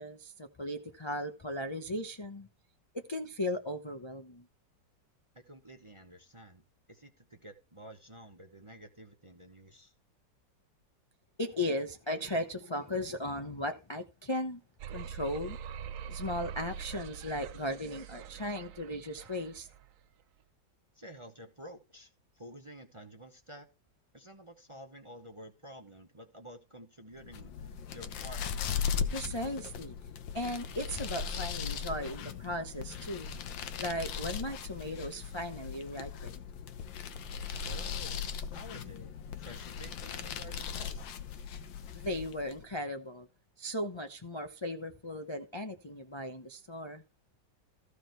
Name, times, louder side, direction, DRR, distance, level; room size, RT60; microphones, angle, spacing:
voice 1, 0.0-2.5 2.9-4.5 11.4-14.6 14.9-15.6 16.1-19.7 29.1-29.9 30.3-33.3 33.8-36.4 41.9-43.3 43.6-47.0, left 1 dB, 35° left, 0.4 m, -37 dB
voice 2, 5.3-9.9 20.9-23.7 24.1-28.4 37.7-41.2, equal, 25° right, 0.7 m, -51 dB
sound 1, 14.8-19.9, right 7 dB, 70° right, 0.8 m, -44 dB
sound 2, 27.2-42.7, left 7 dB, 85° left, 1.6 m, -38 dB
14.5 x 4.8 x 4.5 m
omnidirectional pair, 2.0 m